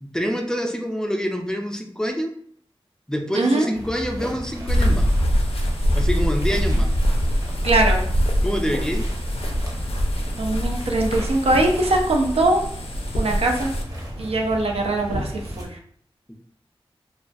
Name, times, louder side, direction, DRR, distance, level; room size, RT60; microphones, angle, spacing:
voice 1, 0.0-2.3 3.1-5.1 6.0-6.9 8.4-9.1 16.3-16.4, equal, 5° left, 3 dB, 0.3 m, -26 dB
voice 2, 3.3-3.7 7.6-8.1 10.4-12.6 13.2-13.7 14.2-15.8, right 2 dB, 90° right, 2 dB, 0.4 m, -21 dB
sound 1, 3.7-15.6, equal, 40° right, 0.7 m, -34 dB
sound 2, 4.7-13.8, equal, 75° left, 0.4 m, -23 dB
2.3 x 2.2 x 2.5 m, 0.62 s
wide cardioid pair, 75°, 10 cm